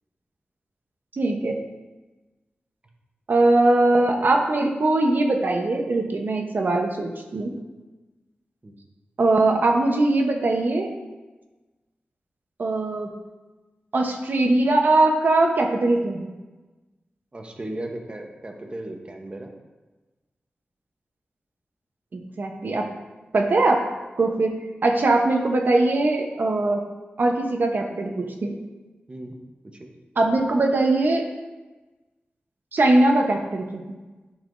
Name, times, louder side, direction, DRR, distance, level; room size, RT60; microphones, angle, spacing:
voice 1, 1.1-1.6 3.3-7.5 9.2-10.9 12.6-13.1 13.9-16.3 22.1-22.9 23.3-23.8 24.2-24.5 24.8-26.8 27.2-28.5 30.2-31.3 32.7-33.8, right 2 dB, 60° right, 3 dB, 0.9 m, -21 dB
voice 2, 17.3-19.5 29.1-29.3 29.6-29.9, right 1 dB, 30° right, 2 dB, 0.9 m, -36 dB
10.5 x 5.7 x 2.6 m, 1.2 s
wide cardioid pair, 100°, 4 cm